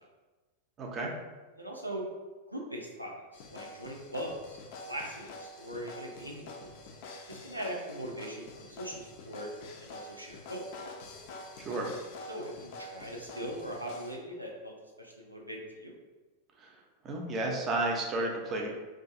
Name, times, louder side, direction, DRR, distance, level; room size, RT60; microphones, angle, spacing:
voice 1, 0.8-1.1 11.6-11.9 16.6-16.7 17.0-18.7, right 2 dB, 30° right, 0 dB, 0.5 m, -32 dB
voice 2, 1.6-2.1 2.5-4.6 4.9-6.7 7.3-9.5 9.8-10.7 12.3-15.9, right 1 dB, 85° right, -1 dB, 0.4 m, -40 dB
sound 1, 3.3-14.2, left 2 dB, 50° left, 0.3 m, -47 dB
2.5 x 2.3 x 2.6 m, 1.2 s
figure-of-eight pair, 90°, 0 cm